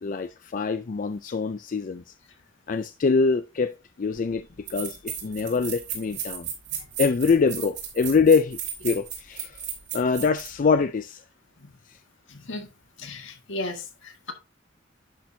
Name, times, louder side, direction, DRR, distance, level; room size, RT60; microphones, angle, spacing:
voice 1, 0.0-2.0 2.7-4.4 4.7-6.5 7.0-9.6 9.9-11.2, left 4 dB, 45° left, 0.4 m, -24 dB
sound 1, 4.1-4.2 4.7-10.5, right 9 dB, 60° right, 3.4 m, -34 dB
voice 2, 12.3-12.7 13.0-14.3, left 2 dB, 75° left, 1.7 m, -35 dB
10.5 x 6.0 x 2.7 m
head